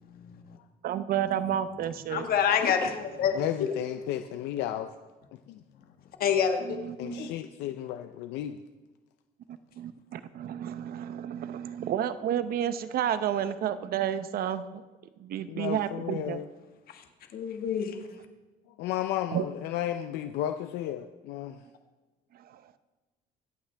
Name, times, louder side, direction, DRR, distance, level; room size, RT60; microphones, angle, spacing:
voice 1, 0.8-2.3 6.6-7.3 9.8-14.8 15.2-16.4 19.3-19.4 22.3-22.6, right 10 dB, 60° right, 12 dB, 0.8 m, -31 dB
voice 2, 2.1-3.4 6.2-6.8 7.1-7.3 16.9-17.0 17.3-18.0, left 7 dB, 60° left, 5 dB, 1.6 m, -27 dB
voice 3, 3.3-4.9 5.5-5.6 7.0-8.6 15.5-16.5 18.8-21.6, left 12 dB, 90° left, 8 dB, 0.6 m, -33 dB
24.5 x 8.6 x 3.4 m, 1.2 s
cardioid pair, 110°, 17 cm